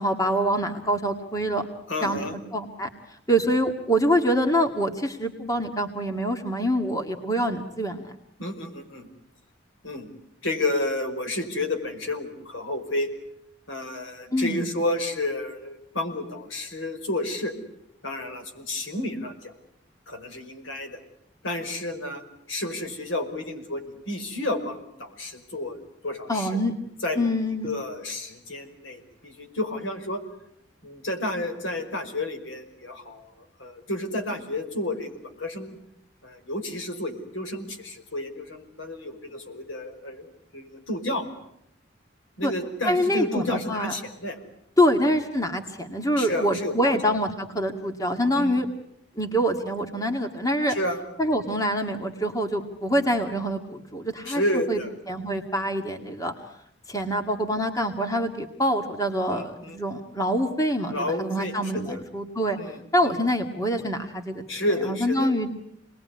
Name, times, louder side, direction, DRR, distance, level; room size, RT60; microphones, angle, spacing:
voice 1, 0.0-1.7 2.0-2.9 3.3-8.1 14.3-14.7 26.3-26.7 27.2-27.7 42.4-42.5 42.8-43.9 44.8-48.7 49.2-50.8 51.2-54.4 54.7-54.8 55.1-56.3 56.9-62.6 62.9-64.4 64.8-65.5, equal, 15° left, 5 dB, 2.1 m, -25 dB
voice 2, 1.9-2.4 8.4-9.1 9.8-10.1 10.4-13.1 13.7-17.5 18.0-19.5 20.1-21.0 21.4-26.5 27.0-30.2 30.8-33.3 33.6-35.1 35.4-35.8 36.2-40.3 40.5-41.3 42.4-44.4 46.2-47.0 48.3-48.6 50.7-51.0 54.3-54.9 59.3-59.8 60.9-62.0 62.6-62.8 64.5-65.4, left 1 dB, 80° left, 6 dB, 5.1 m, -31 dB
28.5 x 21.0 x 9.7 m, 0.77 s
head